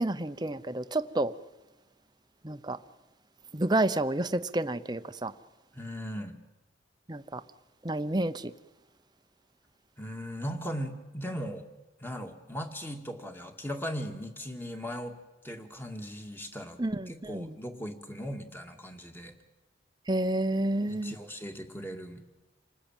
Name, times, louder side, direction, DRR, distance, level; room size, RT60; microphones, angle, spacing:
voice 1, 0.0-1.3 2.4-2.8 3.5-5.3 7.1-7.4 7.8-8.5 16.8-17.5 20.1-21.1, right 1 dB, 20° right, 0.8 m, -29 dB
voice 2, 5.7-6.4 10.0-11.7 12.0-15.1 15.4-16.8 17.1-19.3 20.9-22.2, equal, 10° left, 2.1 m, -38 dB
28.0 x 20.0 x 9.1 m
head